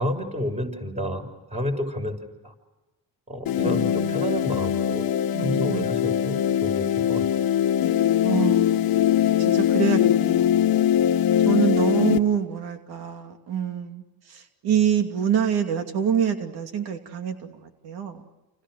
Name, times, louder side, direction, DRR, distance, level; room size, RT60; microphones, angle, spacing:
voice 1, 0.0-2.2 2.4-2.5 3.3-5.0 5.4-7.2, equal, 20° right, 4 dB, 6.7 m, -30 dB
sound 1, 3.5-12.2, left 10 dB, 70° left, 1.2 m, -22 dB
voice 2, 3.6-4.1 5.3-5.9 8.2-9.0 9.4-10.6 11.5-14.0 14.6-17.4 17.8-18.2, right 8 dB, 85° right, 5 dB, 2.8 m, -26 dB
30.0 x 29.0 x 6.6 m, 1.1 s
cardioid pair, 110°, 37 cm